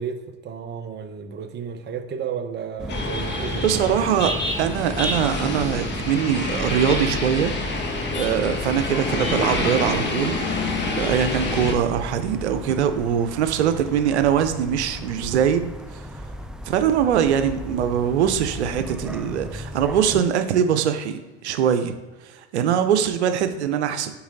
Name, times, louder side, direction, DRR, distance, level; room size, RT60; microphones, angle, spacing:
voice 1, 0.0-3.7, right 7 dB, 30° right, 7 dB, 0.8 m, -32 dB
sound 1, 2.8-20.2, equal, ahead, 0.4 m, -35 dB
sound 2, 2.9-11.7, left 3 dB, 35° left, 1.4 m, -27 dB
voice 2, 3.5-7.5 8.1-10.4 11.0-16.1 16.7-21.9 22.2-24.1, right 8 dB, 90° right, 9 dB, 0.6 m, -22 dB
7.0 x 4.7 x 3.8 m, 1.3 s
hypercardioid pair, 95°, 33 cm